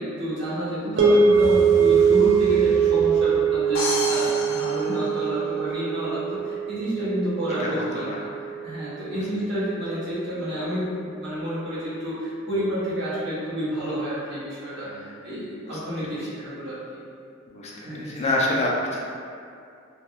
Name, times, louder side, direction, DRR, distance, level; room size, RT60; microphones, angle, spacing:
voice 1, 0.0-8.1 8.6-16.8 17.7-18.3, equal, 60° right, -11 dB, 0.7 m, -29 dB
sound 1, 1.0-9.3, right 6 dB, 90° right, 0.4 m, -22 dB
sound 2, 1.2-4.4, left 1 dB, 50° left, 0.7 m, -38 dB
sound 3, 3.7-5.7, left 2 dB, 90° left, 0.5 m, -30 dB
voice 2, 4.1-4.5 7.6-8.2 9.1-9.2 14.8-16.2 17.5-19.0, left 1 dB, 30° left, -3 dB, 0.3 m, -29 dB
2.3 x 2.2 x 2.9 m, 2.5 s
head